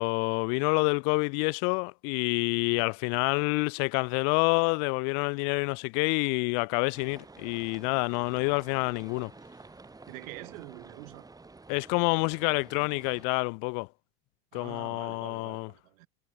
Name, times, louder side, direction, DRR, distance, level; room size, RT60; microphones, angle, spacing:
voice 1, 0.0-9.3 11.7-13.9 14.5-15.7, left 40 dB or more, 40° left, 0.9 m, -28 dB
sound 1, 6.9-13.3, right 3 dB, 10° right, 5.0 m, -50 dB
voice 2, 10.1-11.3 14.5-16.1, right 23 dB, 60° right, 4.7 m, -46 dB
supercardioid pair, 150°, 46 cm